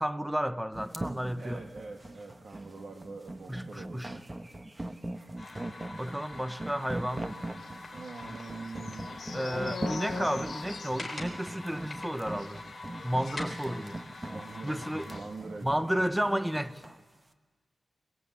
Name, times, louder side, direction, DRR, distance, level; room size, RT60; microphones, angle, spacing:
voice 1, 0.0-1.6 3.5-4.1 6.0-7.3 9.3-12.6 13.0-14.0 14.6-15.1 15.6-16.8, equal, 5° right, 0.7 m, -32 dB
sound 1, 0.7-17.0, right 1 dB, 20° right, 1.0 m, -40 dB
voice 2, 1.4-4.2 7.9-9.1 14.2-15.8, right 3 dB, 55° right, 1.8 m, -44 dB
sound 2, 5.4-15.2, left 2 dB, 20° left, 3.8 m, -44 dB
sound 3, 7.5-14.3 14.5-14.7 15.0-15.3, left 5 dB, 65° left, 1.3 m, -43 dB
22.0 x 20.5 x 8.3 m
wide cardioid pair, 160°, 0 cm